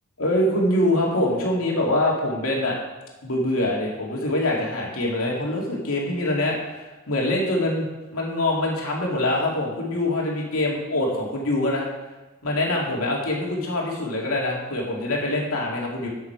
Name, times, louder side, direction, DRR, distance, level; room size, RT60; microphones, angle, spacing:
voice 1, 0.2-2.8 3.2-7.9 8.1-11.9 12.4-16.1, left 1 dB, 80° left, -2 dB, 2.6 m, -24 dB
11.5 x 7.2 x 4.7 m, 1.1 s
head